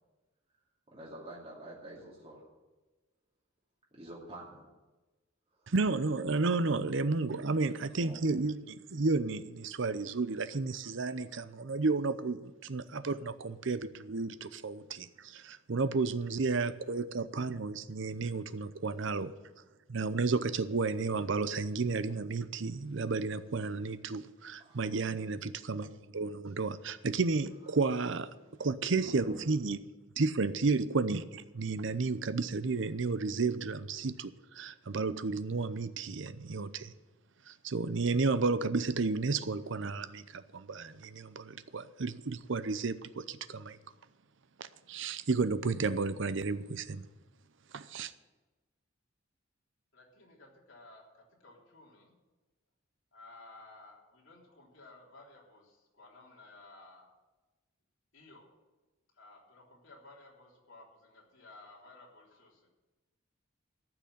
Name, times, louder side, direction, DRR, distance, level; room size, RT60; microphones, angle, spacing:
voice 1, 0.9-2.5 3.9-4.7 5.5-5.7 8.0-8.2 24.6-24.9 29.0-29.4, right 1 dB, 30° right, -5 dB, 2.6 m, -47 dB
voice 2, 5.7-19.3 19.9-28.3 28.6-29.8 30.2-36.9 37.5-43.8 44.6-47.1 47.7-48.1, right 3 dB, 65° right, 13 dB, 0.7 m, -32 dB
voice 3, 49.9-52.1 53.1-57.1 58.1-58.5 59.1-62.7, left 2 dB, 65° left, -3 dB, 3.6 m, -56 dB
14.0 x 6.1 x 10.0 m, 1.2 s
head